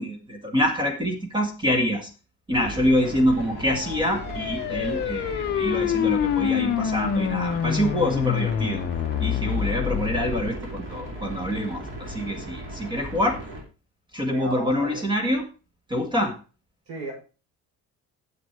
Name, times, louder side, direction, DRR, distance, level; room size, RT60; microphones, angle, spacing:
voice 1, 0.0-2.1 2.5-8.8 9.2-13.4 14.1-15.4 15.9-16.3, equal, 15° right, 5 dB, 1.6 m, -26 dB
sound 1, 2.5-13.6, right 1 dB, 40° right, 3.3 m, -37 dB
sound 2, 3.6-10.5, left 9 dB, 35° left, 0.6 m, -27 dB
voice 2, 14.3-15.0 16.9-17.1, right 2 dB, 55° right, 0 dB, 5.9 m, -34 dB
9.5 x 7.5 x 4.6 m, 0.33 s
cardioid pair, 175°, 31 cm